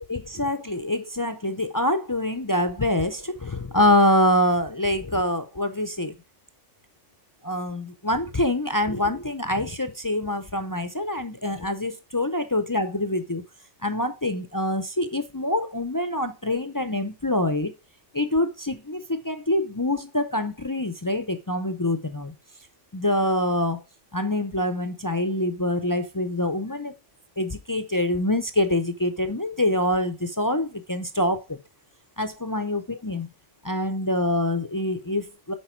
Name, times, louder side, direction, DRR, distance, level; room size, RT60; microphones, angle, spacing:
voice 1, 0.1-6.1 7.4-13.4 13.8-17.7 18.1-22.3 22.9-23.8 24.1-26.9 27.4-31.6 32.2-33.3 33.6-35.5, left 1 dB, 30° left, 0.4 m, -25 dB
8.7 x 5.0 x 4.5 m
omnidirectional pair, 1.3 m